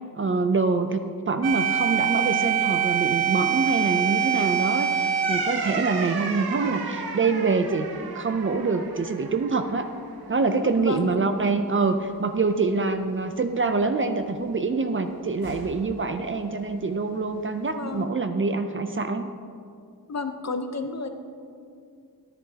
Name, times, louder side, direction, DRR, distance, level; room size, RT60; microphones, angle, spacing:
voice 1, 0.2-7.9 8.1-9.9 10.3-19.3, right 4 dB, 35° right, 8 dB, 0.4 m, -25 dB
sound 1, 1.4-10.1 10.4-10.5 15.4-16.0, right 8 dB, 85° right, 0.9 m, -27 dB
voice 2, 10.8-11.1 17.7-18.1 20.1-21.1, left 4 dB, 45° left, 6 dB, 0.7 m, -31 dB
13.0 x 10.5 x 2.8 m, 2.4 s
wide cardioid pair, 155°, 37 cm